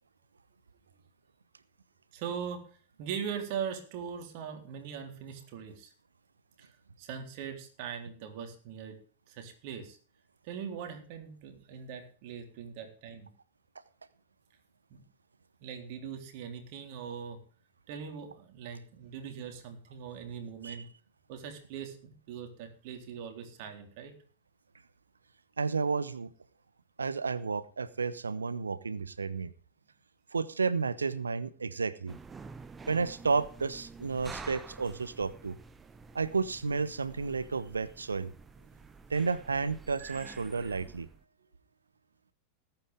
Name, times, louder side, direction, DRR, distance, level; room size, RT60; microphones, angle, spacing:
voice 1, 2.1-2.6 3.0-5.9 6.6-6.7 7.0-9.0 9.3-10.0 10.4-13.3 14.9-15.0 15.6-17.4 17.9-20.9 21.3-24.1 40.0-40.8, right 7 dB, 45° right, 5 dB, 3.6 m, -41 dB
voice 2, 25.6-26.3 27.0-29.5 30.3-32.2 32.9-35.6 36.1-38.3 39.1-41.1, right 4 dB, 75° right, 17 dB, 1.0 m, -32 dB
sound 1, 32.1-41.2, right 4 dB, 15° right, 1.0 m, -49 dB
19.5 x 9.1 x 3.6 m, 0.42 s
figure-of-eight pair, 90°, 0 cm